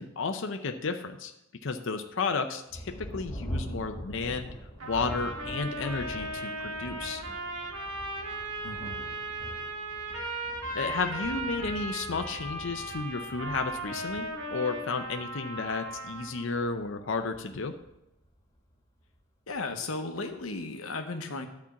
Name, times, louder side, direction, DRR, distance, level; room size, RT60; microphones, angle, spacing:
voice 1, 0.0-1.3 1.6-4.5 4.8-7.2 10.7-17.7, left 4 dB, 65° left, 6 dB, 0.7 m, -32 dB
Thunder, 2.7-18.8 19.5-19.6 20.2-20.6, equal, 15° left, 1.8 m, -44 dB
sound 1, 4.8-16.5, right 1 dB, 75° right, 1.9 m, -37 dB
voice 2, 8.6-9.0 19.5-21.5, left 3 dB, 85° left, 5 dB, 1.1 m, -35 dB
11.0 x 4.4 x 7.1 m, 0.86 s
head